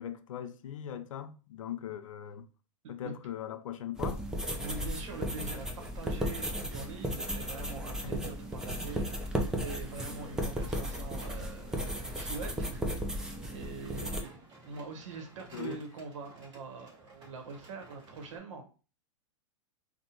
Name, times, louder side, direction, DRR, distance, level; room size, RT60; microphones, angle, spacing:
voice 1, 0.0-2.5 2.9-4.2 4.6-4.7 8.0-8.3 15.5-15.8, left 10 dB, 85° left, 0.4 m, -40 dB
sound 1, 4.0-14.2, equal, 5° right, 0.3 m, -35 dB
sound 2, 4.2-18.4, right 2 dB, 30° right, 1.3 m, -56 dB
voice 2, 4.6-9.3 9.6-13.3 13.5-18.7, right 4 dB, 75° right, 1.0 m, -44 dB
2.5 x 2.1 x 2.9 m
hypercardioid pair, 130°, 16 cm